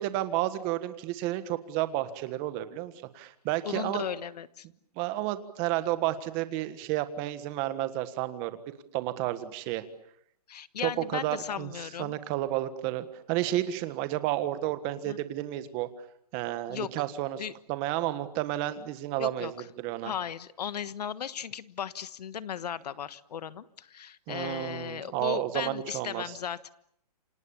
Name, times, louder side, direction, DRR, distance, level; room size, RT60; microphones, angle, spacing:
voice 1, 0.0-4.0 5.0-8.6 8.9-9.8 10.8-11.7 12.0-15.9 16.3-17.4 17.7-20.1 24.3-26.2, right 14 dB, 25° right, 12 dB, 1.5 m, -31 dB
voice 2, 3.6-4.6 10.5-12.2 15.1-15.2 16.7-17.0 17.4-17.5 19.2-19.7 20.0-26.7, left 8 dB, 75° left, 16 dB, 1.4 m, -36 dB
28.5 x 26.0 x 7.2 m, 0.70 s
hypercardioid pair, 165°, 21 cm